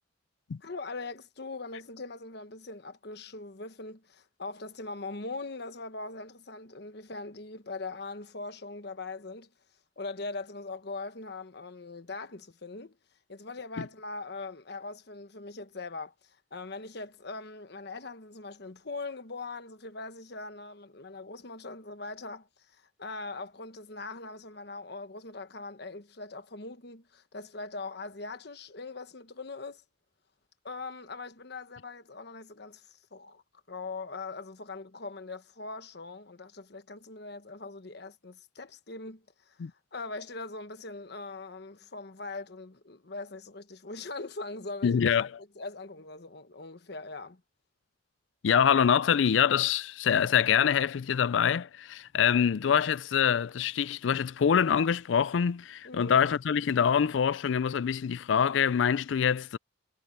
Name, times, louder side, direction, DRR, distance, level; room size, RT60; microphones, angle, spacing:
voice 1, 0.6-9.5 10.0-12.9 13.3-29.8 30.6-33.4 33.7-39.6 39.9-45.3 45.6-47.4 55.8-56.2, left 3 dB, 60° left, 1.2 m, -41 dB
voice 2, 44.8-45.3 48.4-59.6, left 7 dB, 80° left, 0.4 m, -25 dB
head